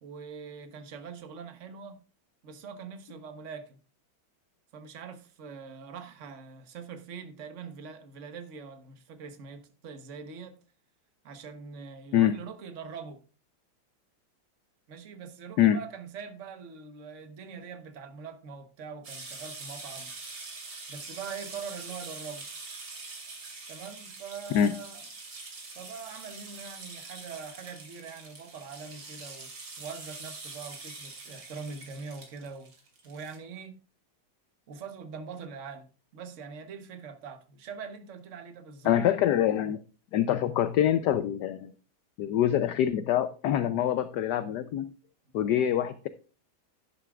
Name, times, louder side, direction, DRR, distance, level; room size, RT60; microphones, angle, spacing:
voice 1, 0.0-2.0 2.4-3.8 4.7-10.6 11.2-13.2 14.9-20.1 20.9-22.5 23.7-25.0 25.7-29.5 29.8-32.7 33.0-33.8 34.7-35.9 36.1-39.2, right 5 dB, 45° right, 1.2 m, -43 dB
sound 1, 19.0-33.4, right 3 dB, 65° right, 3.2 m, -44 dB
voice 2, 38.8-39.8 40.1-41.7 42.2-44.9 45.3-46.1, left 10 dB, 70° left, 1.1 m, -25 dB
11.0 x 11.0 x 2.4 m
omnidirectional pair, 2.2 m